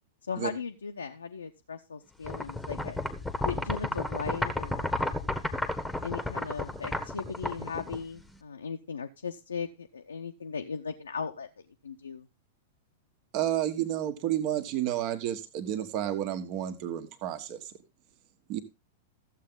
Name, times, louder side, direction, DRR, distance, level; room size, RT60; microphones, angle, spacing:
voice 1, 0.2-3.0 3.4-4.9 6.0-11.5 11.8-12.3, left 5 dB, 70° left, 4 dB, 0.8 m, -37 dB
sound 1, 2.2-8.4, left 2 dB, 5° left, 1.3 m, -32 dB
voice 2, 13.3-17.7 18.5-18.6, right 11 dB, 40° right, 9 dB, 1.6 m, -31 dB
14.5 x 8.0 x 3.8 m, 0.26 s
figure-of-eight pair, 95°, 0 cm